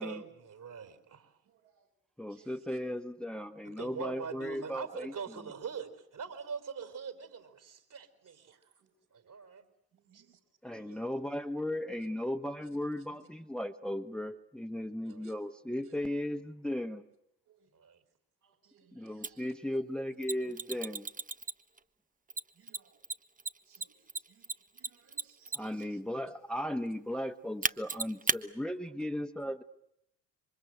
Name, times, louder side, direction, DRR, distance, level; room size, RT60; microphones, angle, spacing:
voice 1, 0.0-1.3 3.6-8.6 9.1-9.6 10.1-10.3 10.7-11.1 12.8-13.2 15.0-15.3 17.7-18.0, right 6 dB, 50° right, 10 dB, 4.6 m, -43 dB
voice 2, 1.5-1.9 2.3-2.8 8.5-8.6 8.8-8.9 9.9-10.4 10.9-11.0 15.0-15.3 15.8-15.9 17.5-17.7 18.4-19.5 22.5-23.0 23.7-24.4 24.7-26.0, right 8 dB, 65° right, 2 dB, 5.7 m, -65 dB
voice 3, 2.2-5.1 10.6-17.0 18.9-21.1 25.5-29.6, left 1 dB, ahead, 8 dB, 1.5 m, -36 dB
Mechanisms, 19.2-19.3 20.2-21.8 22.3-25.8 27.6-28.4, right 4 dB, 20° right, 1.2 m, -34 dB
27.5 x 24.5 x 8.0 m, 0.78 s
hypercardioid pair, 50°, 41 cm